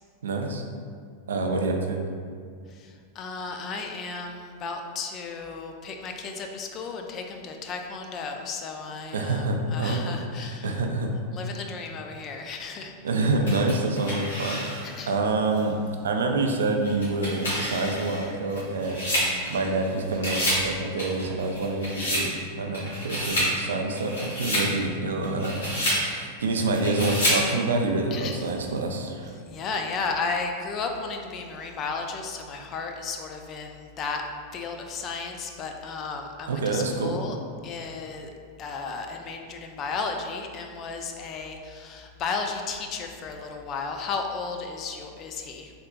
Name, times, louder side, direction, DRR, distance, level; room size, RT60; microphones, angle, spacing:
voice 1, 0.2-0.6 1.3-2.0 9.1-11.1 13.0-14.7 15.1-15.8 16.0-29.3 36.5-37.2, right 2 dB, 85° right, 3 dB, 0.3 m, -27 dB
voice 2, 2.7-10.8 11.3-12.9 14.8-15.1 28.1-28.5 29.4-34.2 34.5-37.4 37.6-38.3 38.6-45.7, left 4 dB, 40° left, 4 dB, 0.4 m, -34 dB
sound 1, 13.5-15.0 15.6-15.7 16.8-19.8 20.1-20.7 21.0-22.3 22.7-23.5 24.0-24.7 25.2-26.0 26.7-27.4, equal, 90° left, 1.4 m, -28 dB
3.5 x 2.8 x 2.4 m, 2.1 s
hypercardioid pair, 110°, 0 cm